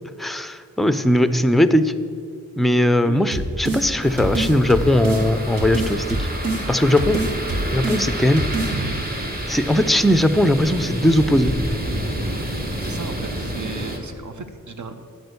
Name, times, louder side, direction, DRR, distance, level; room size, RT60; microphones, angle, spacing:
voice 1, 0.2-1.9 2.6-6.3 6.7-7.2 7.7-8.5 9.5-11.5, left 1 dB, ahead, 11 dB, 0.4 m, -19 dB
sound 1, 3.3-3.8 4.2-5.2 5.6-6.6 7.0-8.0 8.4-8.7, right 2 dB, 75° right, 1.3 m, -25 dB
sound 2, 4.0-14.0, right 1 dB, 25° right, 1.4 m, -29 dB
voice 2, 8.7-9.2 12.8-15.0, right 3 dB, 60° right, 8 dB, 0.8 m, -34 dB
8.7 x 6.2 x 6.8 m, 2.3 s
wide cardioid pair, 60°, 34 cm